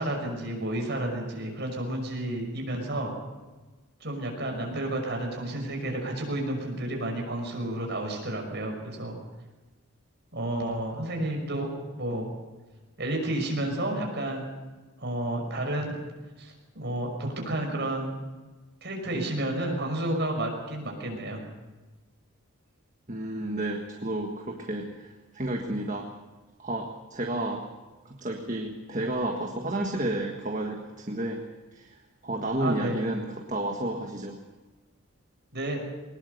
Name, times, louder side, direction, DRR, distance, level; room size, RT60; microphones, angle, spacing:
voice 1, 0.0-3.1 4.0-9.2 10.3-11.7 12.0-12.3 13.0-14.5 15.0-16.0 16.4-18.1 18.8-21.4 32.6-33.0 35.5-35.8, right 1 dB, 50° right, 2 dB, 5.8 m, -31 dB
voice 2, 23.1-26.1 26.6-27.7 28.1-31.4 31.7-34.4, right 1 dB, 35° right, 2 dB, 1.6 m, -31 dB
21.5 x 20.0 x 6.7 m, 1.2 s
head